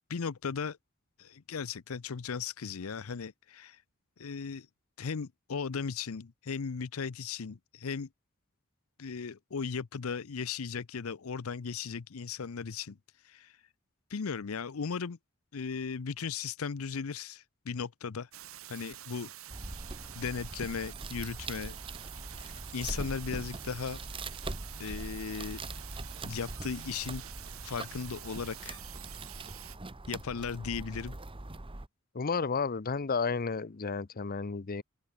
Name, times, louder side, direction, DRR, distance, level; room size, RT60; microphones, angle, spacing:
voice 1, 0.1-0.8 1.2-3.8 4.2-4.7 5.0-8.1 9.0-13.0 13.2-13.6 14.1-15.2 15.5-18.3 18.7-19.3 20.1-21.8 22.4-24.0 24.8-25.6 26.2-27.2 27.6-28.8 30.1-31.2, left 5 dB, 80° left, 0.6 m, -37 dB
sound 1, 18.3-29.8, right 13 dB, 80° right, 2.0 m, -48 dB
sound 2, 19.5-31.9, right 2 dB, 25° right, 1.1 m, -42 dB
voice 2, 32.1-34.8, left 5 dB, 45° left, 0.7 m, -32 dB
open air
head